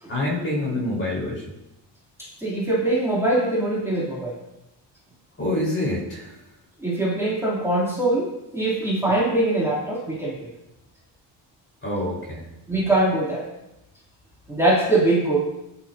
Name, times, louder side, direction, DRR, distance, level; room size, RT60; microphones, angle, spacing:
voice 1, 0.1-1.4 5.4-6.3 11.8-12.4, left 1 dB, 30° left, -3 dB, 4.5 m, -26 dB
voice 2, 2.2-4.4 6.8-10.5 12.7-13.4 14.5-15.4, right 2 dB, 5° right, -8 dB, 3.1 m, -22 dB
14.5 x 10.0 x 2.8 m, 0.92 s
cardioid pair, 135°, 42 cm